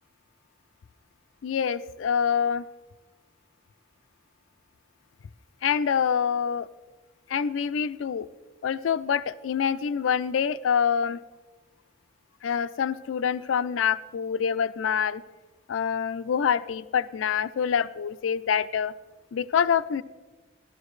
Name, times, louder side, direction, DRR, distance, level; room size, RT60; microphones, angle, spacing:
voice 1, 1.4-2.7 5.6-6.7 7.3-8.3 8.6-11.2 12.4-15.2 15.7-18.9 19.3-20.0, left 7 dB, 90° left, 15 dB, 0.4 m, -26 dB
14.0 x 12.5 x 3.2 m, 1.3 s
head